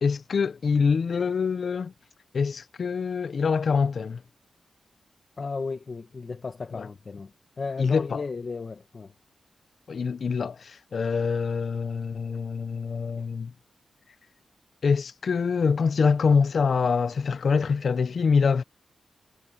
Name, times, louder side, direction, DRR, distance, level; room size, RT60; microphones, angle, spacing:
voice 1, 0.0-1.9 2.3-4.2 6.8-6.9 7.8-8.2 9.9-13.5 14.8-18.6, left 5 dB, 60° left, 0.7 m, -25 dB
voice 2, 5.4-7.3 7.6-9.1, left 4 dB, 45° left, 1.7 m, -34 dB
wide cardioid pair, 105°, 0 cm